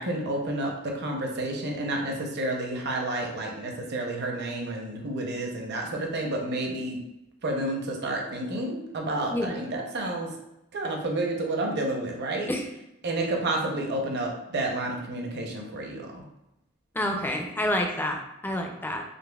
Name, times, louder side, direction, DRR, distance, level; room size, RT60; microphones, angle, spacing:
voice 1, 0.0-7.0 7.4-10.4 10.7-12.5 13.0-16.2, right 1 dB, 50° right, 1 dB, 0.6 m, -30 dB
voice 2, 17.0-19.0, left 1 dB, 10° left, 3 dB, 0.4 m, -28 dB
4.0 x 3.1 x 2.3 m, 0.88 s
head